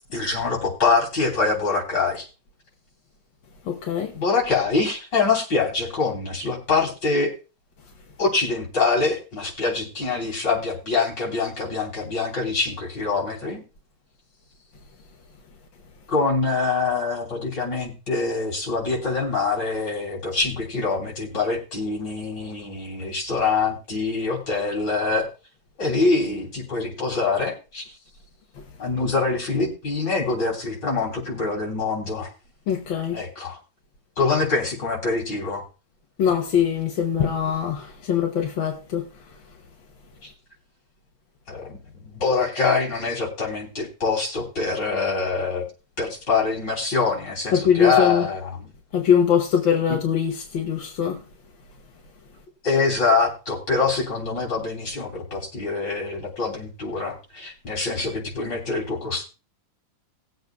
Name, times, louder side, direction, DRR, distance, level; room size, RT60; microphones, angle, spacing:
voice 1, 0.1-2.3 4.1-7.3 8.2-13.6 16.1-25.3 25.8-27.9 28.8-32.3 33.1-33.6 34.2-35.6 40.2-40.3 41.5-45.6 46.0-48.5 52.6-59.2, left 4 dB, 65° left, 4.1 m, -24 dB
voice 2, 3.7-4.1 32.7-33.2 36.2-39.1 47.5-48.3 48.9-51.2, left 8 dB, 85° left, 1.9 m, -22 dB
19.5 x 7.9 x 2.3 m
omnidirectional pair, 2.1 m